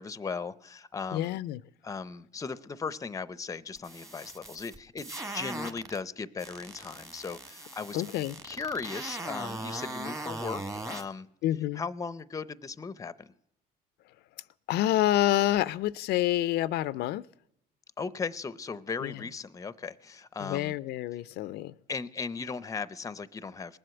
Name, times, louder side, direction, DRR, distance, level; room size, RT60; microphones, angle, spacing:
voice 1, 0.0-1.4 1.8-8.0 8.4-11.3 11.7-13.3 18.0-20.8 21.9-23.8, left 5 dB, 20° left, 17 dB, 0.6 m, -37 dB
voice 2, 1.1-1.6 7.9-8.4 11.4-11.8 14.7-17.3 19.0-19.1 20.4-21.7, left 14 dB, 75° left, 17 dB, 0.4 m, -28 dB
sound 1, 3.8-6.0 6.4-11.0, right 2 dB, 20° right, 1.5 m, -39 dB
19.5 x 7.8 x 7.8 m, 0.79 s
cardioid pair, 110°, 17 cm